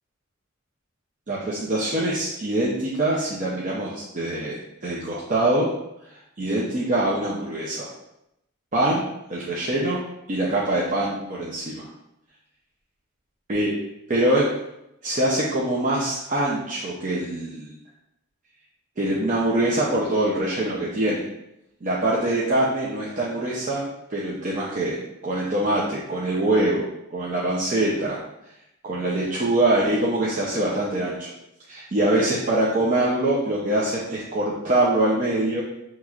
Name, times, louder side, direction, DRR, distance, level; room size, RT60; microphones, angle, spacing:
voice 1, 1.3-5.7 6.4-7.9 8.7-9.0 9.3-10.0 10.3-11.9 13.5-13.7 14.1-14.5 15.0-17.7 19.0-21.2 21.8-25.0 25.2-26.9 27.1-28.2 28.8-31.3 31.7-35.6, right 1 dB, 40° right, -6 dB, 0.6 m, -24 dB
5.8 x 3.0 x 2.4 m, 0.85 s
head